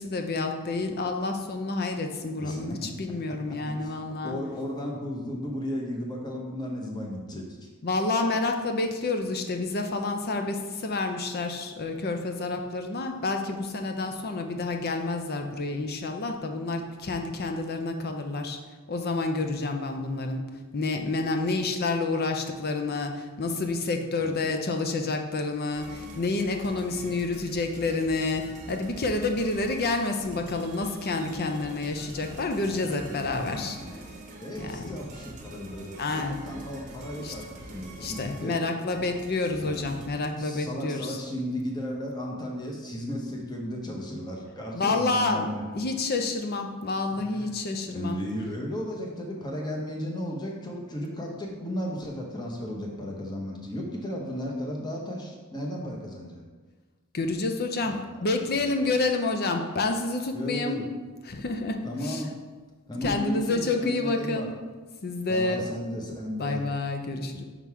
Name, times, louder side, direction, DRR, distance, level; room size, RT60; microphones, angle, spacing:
voice 1, 0.0-4.4 7.8-18.6 18.9-33.8 34.6-35.0 36.0-36.4 37.2-37.4 38.0-41.2 44.7-48.2 57.1-60.9 61.3-62.2 63.0-64.5 65.0-65.7 66.4-67.4, left 3 dB, 45° left, 5 dB, 0.6 m, -29 dB
voice 2, 2.4-2.8 3.7-4.0 4.2-7.5 24.2-24.3 32.2-38.6 39.6-45.6 47.1-47.5 47.9-56.4 57.8-59.0 60.3-60.8 61.8-62.3 62.9-64.5 65.3-66.6, equal, 20° left, -1 dB, 0.9 m, -35 dB
sound 1, 25.7-40.1, right 2 dB, 35° right, 0.8 m, -45 dB
5.6 x 3.9 x 4.7 m, 1.4 s
head